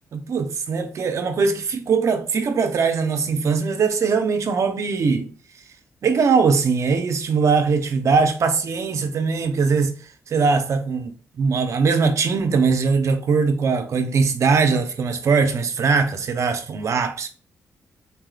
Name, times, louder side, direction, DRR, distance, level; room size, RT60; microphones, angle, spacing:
voice 1, 0.1-5.3 6.0-9.9 10.3-17.3, right 5 dB, 60° right, 0.7 m, -21 dB
4.1 x 3.5 x 2.4 m
cardioid pair, 85°, 6 cm